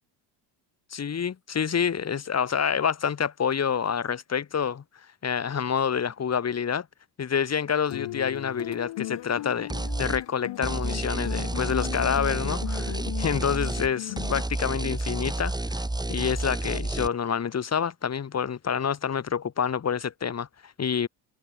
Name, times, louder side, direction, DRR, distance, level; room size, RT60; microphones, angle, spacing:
voice 1, 0.9-4.8 5.2-6.9 7.2-9.7 10.0-15.8 16.1-21.1, left 7 dB, 35° left, 3.0 m, -28 dB
sound 1, 7.9-14.4, left 15 dB, 60° left, 3.5 m, -37 dB
sound 2, 9.7-10.2 10.6-13.9 14.2-17.1, right 2 dB, 10° right, 4.0 m, -30 dB
supercardioid pair, 95°, 47 cm